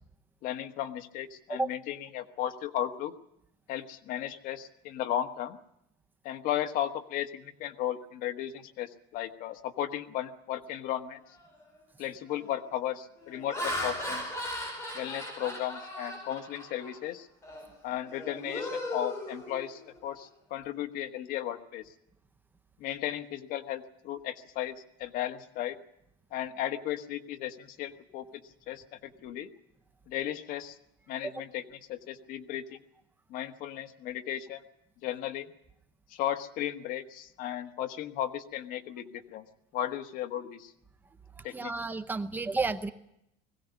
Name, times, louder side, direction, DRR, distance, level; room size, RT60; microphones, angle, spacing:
voice 1, 0.4-3.1 3.7-5.6 6.2-11.2 12.0-14.3 14.9-17.3 17.8-21.8 22.8-25.8 26.3-28.3 28.7-29.5 30.1-30.8 31.1-31.6 31.9-32.8 33.3-34.6 35.0-35.5 36.1-39.4 39.7-40.7 41.4-41.7, left 11 dB, 45° left, 7 dB, 1.4 m, -35 dB
Laughter, 11.4-11.7 12.3-12.6 13.2-17.0 17.4-17.7 18.0-20.0, left 1 dB, 15° left, 5.3 m, -37 dB
voice 2, 41.4-42.9, right 3 dB, 10° right, 10 dB, 0.7 m, -32 dB
21.0 x 16.0 x 8.3 m, 0.79 s
cardioid pair, 170°, 20 cm